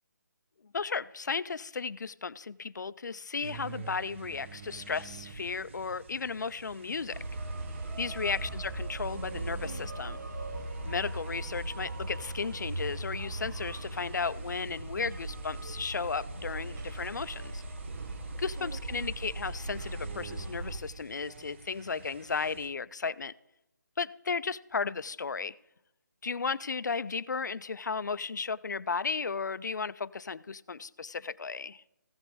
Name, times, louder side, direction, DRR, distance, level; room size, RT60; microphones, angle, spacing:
voice 1, 0.7-7.2 8.0-10.2 10.8-17.6 18.4-23.3 24.0-25.6 26.2-31.8, left 5 dB, 65° left, 19 dB, 0.4 m, -34 dB
sound 1, 3.4-22.7, right 4 dB, 35° right, 0.9 m, -48 dB
sound 2, 7.1-20.8, right 2 dB, 65° right, 1.3 m, -39 dB
15.5 x 7.5 x 3.9 m, 0.90 s
figure-of-eight pair, 150°, 10 cm